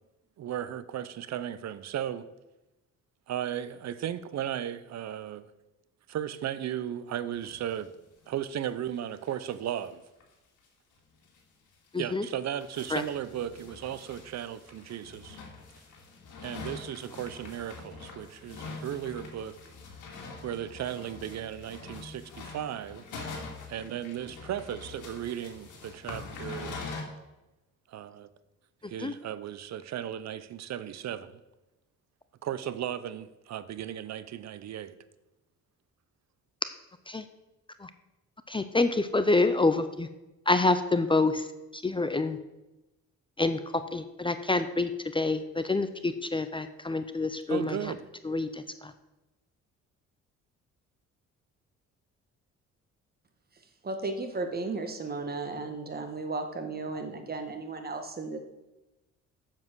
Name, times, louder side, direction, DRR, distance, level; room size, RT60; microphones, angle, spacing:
voice 1, 0.4-2.3 3.3-5.5 6.1-7.9 8.3-10.0 12.0-15.4 16.4-19.6 20.4-23.0 23.7-26.8 27.9-28.3 28.9-31.4 32.4-34.9 47.5-48.0, right 10 dB, 60° right, 0.7 m, -36 dB
sound 1, 7.4-7.9 8.2-8.3 8.5-8.6 9.0-9.1 9.3-9.9 10.2-10.3 10.6-10.7 11.2-11.4 12.0-27.0, left 4 dB, 75° left, 2.5 m, -44 dB
voice 2, 11.9-12.3 12.9-13.0 29.0-29.1 37.1-37.2 37.8-37.9 38.5-40.1 40.5-41.5 41.7-42.4 43.4-47.9 48.2-48.9, left 3 dB, 15° left, 0.6 m, -27 dB
voice 3, 53.8-58.4, right 3 dB, 30° right, 1.6 m, -34 dB
7.5 x 7.4 x 6.2 m
cardioid pair, 90°, 30 cm